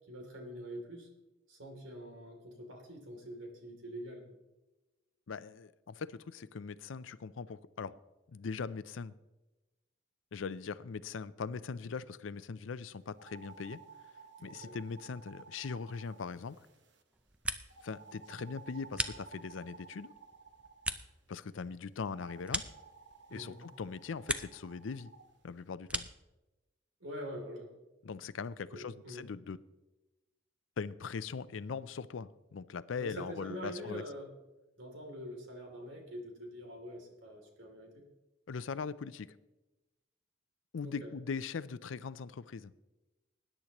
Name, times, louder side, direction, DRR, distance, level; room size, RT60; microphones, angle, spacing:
voice 1, 0.1-1.1 1.5-4.2 14.4-14.8 23.3-23.6 27.0-27.7 28.7-29.2 33.0-34.3 34.8-38.0 40.8-41.1, equal, 90° right, 2.9 m, -45 dB
voice 2, 5.3-8.0 8.3-9.1 10.3-13.8 14.4-16.6 17.8-20.1 21.3-22.6 23.3-25.1 25.4-26.1 28.0-29.6 30.8-34.0 38.5-39.3 40.7-42.7, left 5 dB, 85° left, 0.5 m, -40 dB
sound 1, 13.1-17.0 17.7-21.0 22.0-25.3, right 5 dB, 65° right, 1.1 m, -55 dB
sound 2, 17.1-18.0 18.3-19.7 20.1-23.4 23.8-24.7 25.0-26.3, right 2 dB, 5° right, 0.4 m, -40 dB
20.0 x 9.9 x 3.0 m
head